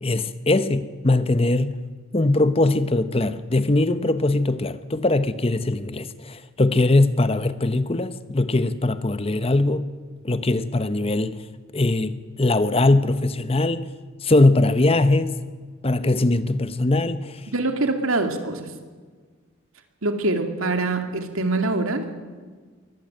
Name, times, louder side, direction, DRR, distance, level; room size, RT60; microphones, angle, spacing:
voice 1, 0.0-1.7 2.1-9.8 10.2-11.4 11.7-13.9 14.2-15.4 15.8-17.5, left 2 dB, 30° left, 0.8 m, -21 dB
voice 2, 17.5-18.7 20.0-22.1, right 2 dB, 80° right, 2.5 m, -24 dB
23.0 x 15.5 x 9.0 m
head